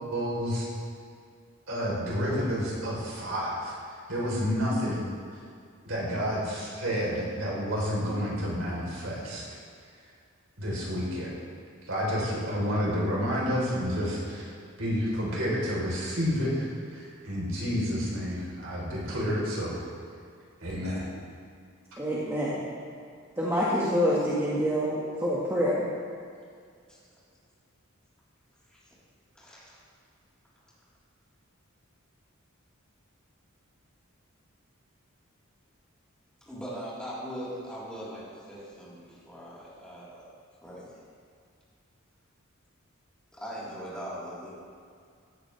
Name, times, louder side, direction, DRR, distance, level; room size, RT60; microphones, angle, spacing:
voice 1, 0.1-0.7 1.7-3.7 4.1-5.0 5.8-9.5 10.6-11.3 11.9-14.5 14.8-19.8 20.6-21.1, equal, 65° right, -4 dB, 4.0 m, -30 dB
voice 2, 22.0-22.7 23.4-25.8, equal, 10° right, -8 dB, 1.8 m, -26 dB
voice 3, 29.3-29.8 36.5-40.3 40.6-40.9 43.4-44.5, equal, 5° left, -10 dB, 4.1 m, -40 dB
16.5 x 13.5 x 3.5 m, 2.2 s
head